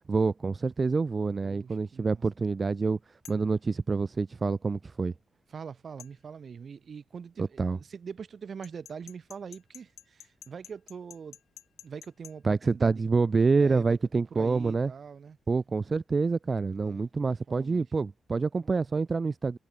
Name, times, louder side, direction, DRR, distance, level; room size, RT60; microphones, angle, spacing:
voice 1, 0.1-3.0 3.3-5.1 7.6-7.8 12.4-14.9 15.5-19.6, right 4 dB, 25° right, 1.5 m, -27 dB
voice 2, 1.4-2.2 5.5-11.4 11.8-13.0 13.6-15.4 16.8-17.9, right 6 dB, 45° right, 3.9 m, -43 dB
sound 1, 3.2-3.5 6.0-6.1 8.6-12.4, left 10 dB, 80° left, 5.4 m, -50 dB
wide cardioid pair, 170°, 0 cm